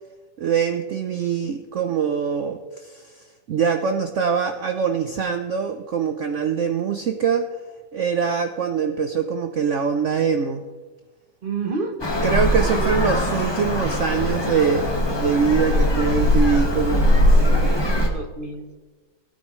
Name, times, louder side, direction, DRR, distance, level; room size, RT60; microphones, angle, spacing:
voice 1, 0.4-3.1 3.5-7.5 7.9-10.6 12.2-17.4, right 6 dB, 90° right, 7 dB, 0.6 m, -23 dB
voice 2, 11.4-12.0 12.6-12.9 15.7-16.2 17.3-18.8, right 3 dB, 40° right, 5 dB, 0.8 m, -31 dB
Traffic noise roadway noise, 12.0-18.1, left 1 dB, 15° left, 1.2 m, -20 dB
17.0 x 9.7 x 3.1 m, 1.3 s
omnidirectional pair, 2.0 m